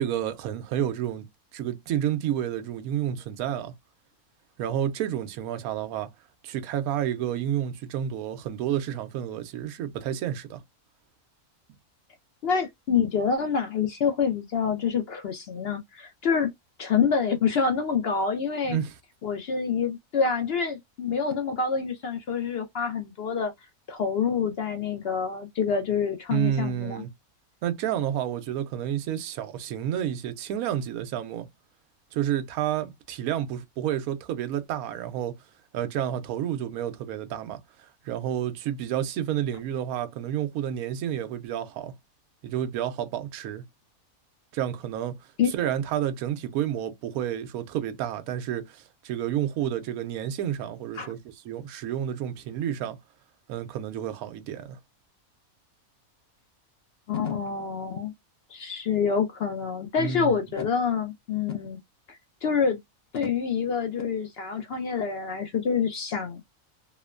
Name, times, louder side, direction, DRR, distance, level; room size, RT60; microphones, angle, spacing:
voice 1, 0.0-3.7 4.6-6.1 6.4-10.6 18.6-18.9 26.3-27.1 27.6-31.5 32.1-35.4 35.7-41.9 42.4-43.6 44.5-45.2 45.5-51.2 51.5-53.0 53.5-54.8 60.0-60.4, right 10 dB, 80° right, 1.0 m, -30 dB
voice 2, 12.4-16.5 16.8-18.8 19.2-23.5 23.9-27.0 45.4-45.5 51.0-51.1 57.1-58.1 58.5-61.8 62.1-62.8 63.1-66.4, left 6 dB, 70° left, 0.6 m, -27 dB
2.9 x 2.1 x 2.3 m
omnidirectional pair, 1.5 m